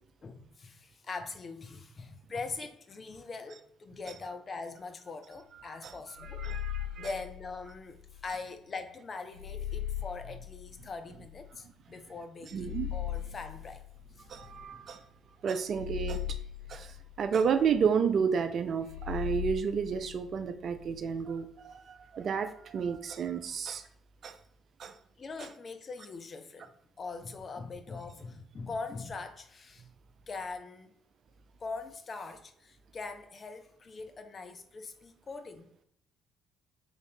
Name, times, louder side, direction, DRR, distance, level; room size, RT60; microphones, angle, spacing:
voice 1, 0.2-6.4 7.0-13.8 14.2-14.3 14.7-14.8 25.2-29.9 30.3-31.0 31.6-35.7, left 4 dB, 40° left, 0.4 m, -42 dB
voice 2, 5.6-7.1 12.5-12.9 14.3-15.1 15.4-16.2 16.7-23.8 24.2-24.4 24.8-24.9, right 6 dB, 50° right, 0.3 m, -31 dB
sound 1, 6.1-8.3 9.3-11.5 12.5-14.8 15.6-17.8 18.8-21.0, left 11 dB, 85° right, 0.7 m, -39 dB
3.3 x 2.5 x 4.1 m
figure-of-eight pair, 45°, 0 cm